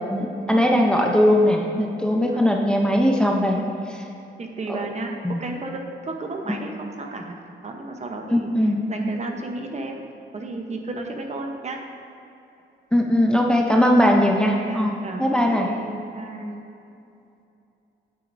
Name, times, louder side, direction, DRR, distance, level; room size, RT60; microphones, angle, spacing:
voice 1, 0.1-3.6 5.2-5.4 8.3-8.8 12.9-15.7, equal, 5° left, 0 dB, 0.6 m, -19 dB
voice 2, 4.4-7.3 7.6-10.0 10.3-11.8 14.6-16.6, right 2 dB, 35° right, 2 dB, 0.8 m, -33 dB
9.2 x 8.5 x 2.6 m, 2.7 s
cardioid pair, 105°, 19 cm